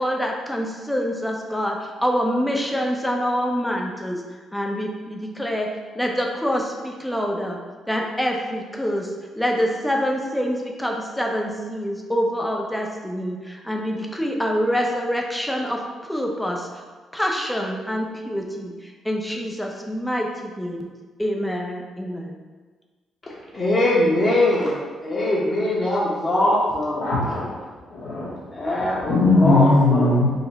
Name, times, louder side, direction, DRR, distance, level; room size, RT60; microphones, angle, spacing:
voice 1, 0.0-4.2 4.5-7.6 7.9-9.1 9.4-16.7 17.1-20.9 21.2-22.3, equal, 5° left, 1 dB, 0.5 m, -26 dB
voice 2, 23.2-27.0 28.5-30.2, left 1 dB, 30° left, -8 dB, 0.8 m, -22 dB
voice 3, 27.0-28.3 29.0-30.3, left 2 dB, 90° left, -7 dB, 1.0 m, -19 dB
3.9 x 2.1 x 3.9 m, 1.4 s
cardioid pair, 90°, 0 cm